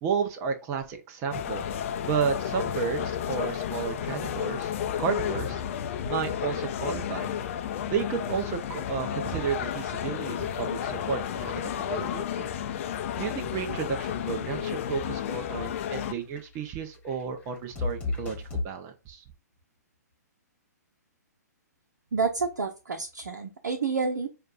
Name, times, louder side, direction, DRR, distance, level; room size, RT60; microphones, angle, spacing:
voice 1, 0.0-1.6 2.0-4.7 5.0-5.6 6.1-7.3 7.9-12.5 13.2-18.4 18.6-19.2, right 6 dB, 30° right, 6 dB, 0.7 m, -32 dB
sound 1, 1.3-16.1, left 9 dB, 45° left, 0.6 m, -32 dB
sound 2, 13.0-13.5 13.7-13.9 14.4-14.9 15.3-15.7 16.2-18.6, left 3 dB, 15° left, 1.4 m, -34 dB
voice 2, 22.1-24.3, right 4 dB, 70° right, 3 dB, 0.9 m, -29 dB
6.4 x 2.5 x 2.4 m, 0.29 s
figure-of-eight pair, 125°, 9 cm